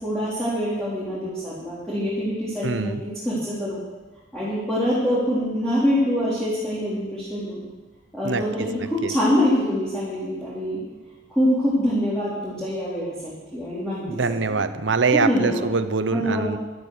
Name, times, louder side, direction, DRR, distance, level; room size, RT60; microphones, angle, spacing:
voice 1, 0.0-3.8 4.3-7.6 8.1-10.8 11.3-13.1 13.5-14.6 15.1-15.7 16.1-16.6, equal, 5° left, -11 dB, 3.7 m, -25 dB
voice 2, 2.6-3.0 8.2-8.4 9.0-9.1 14.1-16.6, right 4 dB, 70° right, 12 dB, 0.8 m, -23 dB
12.5 x 12.0 x 6.6 m, 1.2 s
head